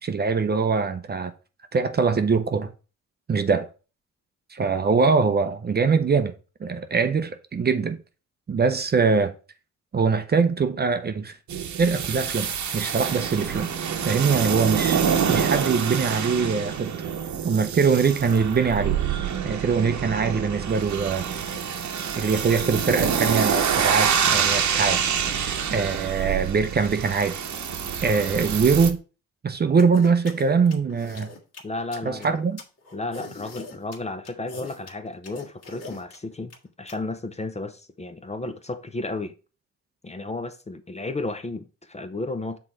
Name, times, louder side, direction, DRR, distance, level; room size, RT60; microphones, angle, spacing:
voice 1, 0.0-1.3 1.7-2.7 3.3-3.7 4.5-6.3 6.6-8.0 8.5-9.3 9.9-11.4 11.8-13.7 14.0-15.0 15.3-16.9 17.4-19.0 19.4-21.3 22.2-25.0 25.7-27.4 28.0-29.0 29.4-31.3 32.0-32.6, right 5 dB, 30° right, 0.6 m, -22 dB
sound 1, 11.5-28.9, right 7 dB, 60° right, 0.9 m, -26 dB
sound 2, 29.8-37.0, left 3 dB, 50° left, 1.7 m, -41 dB
voice 2, 31.6-32.4 32.9-36.5 36.8-39.3 40.0-42.6, left 2 dB, 20° left, 0.6 m, -33 dB
6.1 x 3.8 x 4.4 m
cardioid pair, 90°, 32 cm